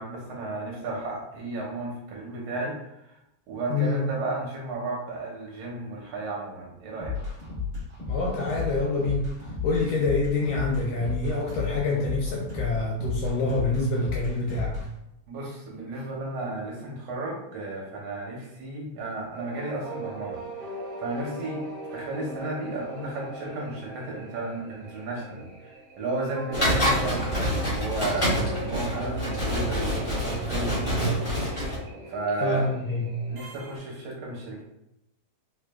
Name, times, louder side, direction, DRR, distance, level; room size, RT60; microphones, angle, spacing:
voice 1, 0.0-3.2 3.5-7.4 15.3-20.7 21.0-21.6 21.9-27.3 27.6-29.9 30.4-31.5 32.1-32.7 33.3-34.6, right 2 dB, 70° right, -3 dB, 1.7 m, -33 dB
voice 2, 3.7-4.0 8.1-9.3 9.6-14.8 32.4-33.2, left 3 dB, 80° left, -3 dB, 1.5 m, -26 dB
sound 1, 7.0-14.8, left 5 dB, 40° right, 1.0 m, -33 dB
sound 2, 19.3-33.8, right 2 dB, 85° right, 1.0 m, -39 dB
sound 3, 26.5-31.8, equal, 45° left, 0.7 m, -26 dB
4.6 x 3.1 x 2.2 m, 0.86 s
omnidirectional pair, 3.3 m